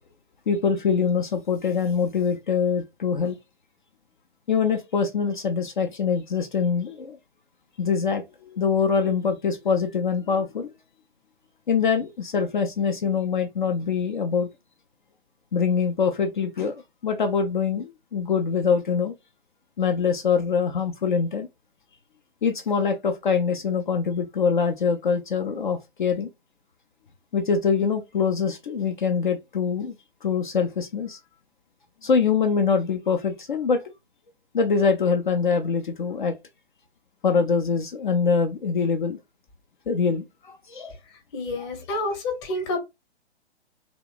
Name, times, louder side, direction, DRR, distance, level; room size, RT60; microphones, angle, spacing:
voice 1, 0.5-3.4 4.5-7.2 7.8-10.7 11.7-14.5 15.5-19.1 19.8-21.5 22.4-26.3 27.3-30.0 30.2-31.2 32.0-33.8 34.5-36.4 37.2-39.2 39.9-40.9 41.9-42.0, left 6 dB, 45° left, 0.5 m, -24 dB
voice 2, 41.3-42.8, left 2 dB, 25° left, 1.0 m, -28 dB
3.0 x 2.2 x 3.8 m
figure-of-eight pair, 125°, 34 cm